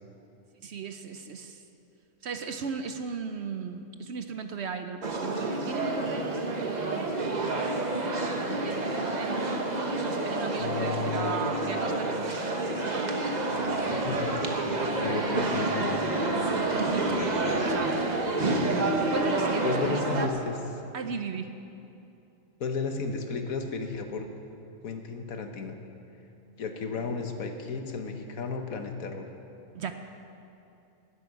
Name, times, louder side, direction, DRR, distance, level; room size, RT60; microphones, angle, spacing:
voice 1, 0.6-1.6 2.2-7.9 8.3-9.6 10.0-12.5 12.9-13.1 16.7-18.1 19.1-20.3 20.9-21.5 29.7-30.0, right 5 dB, 60° right, 8 dB, 0.9 m, -37 dB
sound 1, 5.0-20.3, right 2 dB, 35° right, 1.1 m, -29 dB
voice 2, 10.6-11.5 13.9-14.3 15.0-16.2 17.1-17.8 19.6-20.5 22.6-24.3 24.8-25.8 26.6-29.3, left 4 dB, 75° left, 5 dB, 1.5 m, -34 dB
sound 2, 13.5-19.1, left 2 dB, 55° left, 3.0 m, -39 dB
13.0 x 8.5 x 9.5 m, 2.7 s
omnidirectional pair, 1.5 m